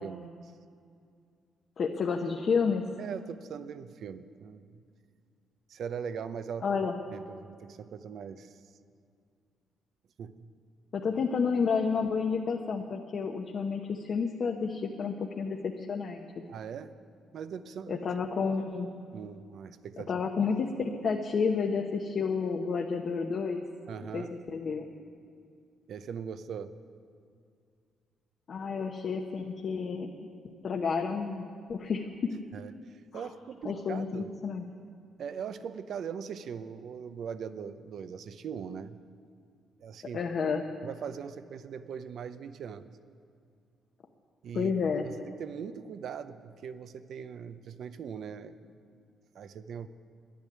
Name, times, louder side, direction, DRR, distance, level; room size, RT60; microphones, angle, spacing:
voice 1, 0.0-0.5 3.0-4.8 5.7-6.8 7.1-8.6 10.2-10.5 16.5-16.9 17.3-18.0 19.1-20.1 23.9-24.3 25.9-26.8 32.5-34.3 35.2-39.0 39.8-40.2 40.8-43.0 44.4-44.8 45.2-48.6 49.3-49.9, right 7 dB, 65° right, 12 dB, 0.6 m, -40 dB
voice 2, 1.8-2.9 6.6-6.9 10.9-16.2 17.9-19.0 20.1-23.7 24.1-24.9 28.5-30.1 30.6-32.4 33.1-33.2 33.6-34.6 40.1-40.6 44.5-45.1, left 5 dB, 55° left, 2 dB, 0.9 m, -30 dB
10.5 x 10.5 x 9.4 m, 2.3 s
cardioid pair, 90°, 0 cm